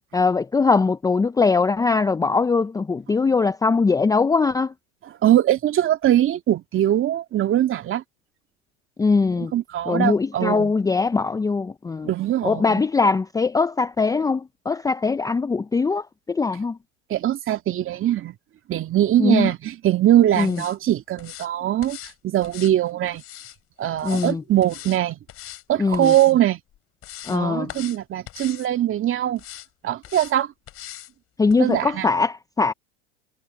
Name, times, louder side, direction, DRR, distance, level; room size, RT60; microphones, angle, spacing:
voice 1, 0.1-4.7 9.0-9.5 9.9-12.1 12.4-16.8 19.2-19.5 20.4-20.6 24.0-24.4 25.8-26.1 27.3-27.7 31.4-32.7, left 4 dB, 10° left, 0.7 m, -21 dB
voice 2, 5.2-8.0 9.4-10.7 12.0-12.8 17.1-18.4 18.7-22.0 22.2-23.2 23.8-25.2 25.7-26.6 27.3-29.4 29.8-30.5 31.6-32.1, right 12 dB, 35° right, 2.5 m, -21 dB
sound 1, 20.3-20.8 21.2-21.5 21.8-22.1 22.4-23.6 24.0-24.3 24.6-25.0 25.3-25.6 25.9-26.3 26.7-27.4 27.7-28.0 28.3-28.7 29.4-29.7 30.0-30.3 30.7-31.1 31.5-31.6, left 13 dB, 40° left, 4.1 m, -40 dB
hypercardioid pair, 100°, 36 cm